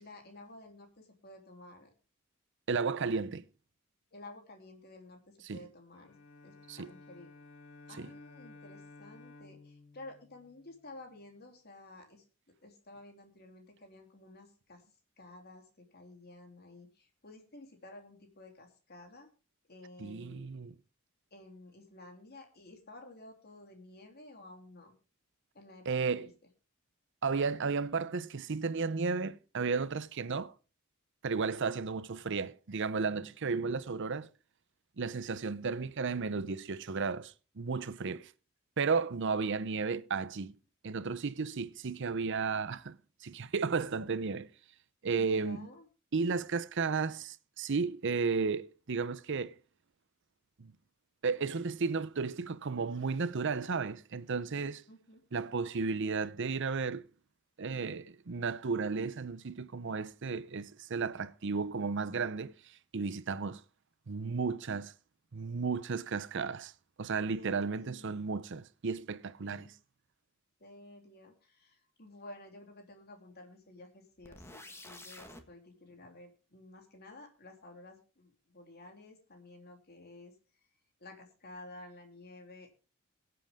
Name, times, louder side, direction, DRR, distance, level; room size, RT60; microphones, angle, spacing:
voice 1, 0.0-1.9 4.1-6.2 6.4-7.3 7.9-12.2 12.6-14.8 15.2-19.3 19.7-20.5 21.3-24.9 25.5-26.3 31.4-31.8 44.0-44.1 45.1-45.9 54.9-55.2 67.3-68.1 69.5-69.8 70.6-80.3 81.0-82.7, left 2 dB, 50° left, 3.2 m, -53 dB
voice 2, 2.7-3.4 5.4-5.7 6.7-6.9 8.0-8.1 20.0-20.7 25.9-26.3 27.2-30.5 31.2-34.3 35.0-38.3 38.8-40.6 40.8-44.5 45.0-45.7 46.1-49.6 50.6-50.7 51.2-54.8 55.3-57.1 57.6-63.6 64.1-64.9 65.3-66.7 67.0-69.6, right 4 dB, 60° right, 0.7 m, -33 dB
Bowed string instrument, 5.9-11.2, left 3 dB, 75° left, 2.3 m, -55 dB
sound 1, 74.2-75.4, left 1 dB, 10° left, 1.5 m, -49 dB
22.0 x 8.0 x 3.6 m
head